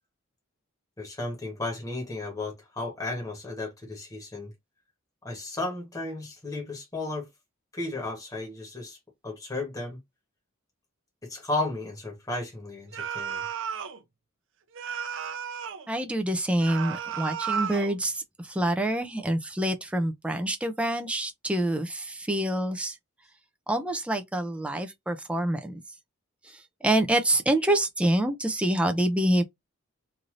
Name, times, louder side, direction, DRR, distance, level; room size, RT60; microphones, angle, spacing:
voice 1, 1.0-4.5 5.2-7.3 7.7-9.0 9.2-10.0 11.2-13.5, left 2 dB, 15° left, 1.1 m, -34 dB
sound 1, 12.9-14.0 14.8-15.9 16.6-18.0, right 7 dB, 65° right, 0.6 m, -33 dB
voice 2, 15.9-23.0 23.7-25.8 26.4-29.4, right 1 dB, 5° right, 0.4 m, -26 dB
3.1 x 2.6 x 2.5 m
head